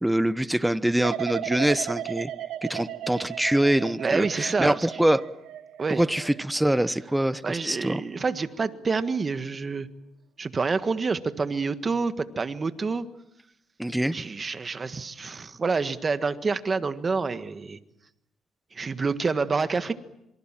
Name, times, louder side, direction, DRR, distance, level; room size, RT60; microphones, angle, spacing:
voice 1, 0.0-2.3 2.7-5.2 5.9-8.0 13.8-14.2, right 1 dB, 5° right, 1.0 m, -24 dB
sound 1, 1.0-8.0 8.4-8.8, right 12 dB, 85° right, 0.9 m, -37 dB
voice 2, 4.0-5.0 5.8-6.0 7.4-9.9 10.4-13.0 14.1-17.8 18.7-19.9, right 4 dB, 35° right, 1.6 m, -27 dB
26.5 x 24.0 x 7.5 m
cardioid pair, 90°, 0 cm